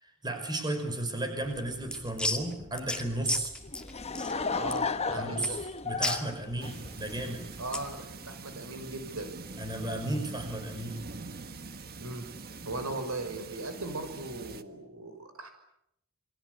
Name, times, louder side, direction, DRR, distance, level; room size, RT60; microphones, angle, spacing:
voice 1, 0.0-3.5 5.1-5.6 5.8-7.5 9.6-11.0 12.9-13.0, right 1 dB, 20° right, 6 dB, 5.8 m, -34 dB
sound 1, 1.4-8.0, left 2 dB, 5° left, 2.4 m, -36 dB
Laughter / Crowd, 3.6-7.4, left 4 dB, 30° left, 1.2 m, -34 dB
voice 2, 4.5-5.6 7.6-9.4 12.0-12.2 12.7-15.5, right 2 dB, 75° right, 7 dB, 6.0 m, -38 dB
sound 2, 6.6-14.6, right 3 dB, 45° right, 1.5 m, -44 dB
29.0 x 23.5 x 8.3 m, 0.80 s
head